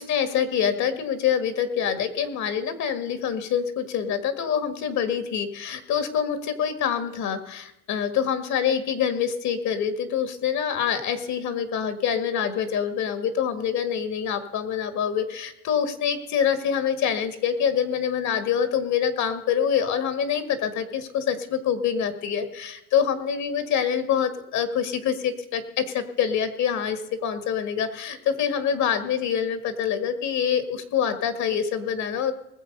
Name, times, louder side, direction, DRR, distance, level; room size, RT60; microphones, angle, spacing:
voice 1, 0.0-32.3, left 8 dB, 50° left, 10 dB, 1.7 m, -26 dB
20.0 x 7.4 x 5.3 m, 0.84 s
supercardioid pair, 120°, 37 cm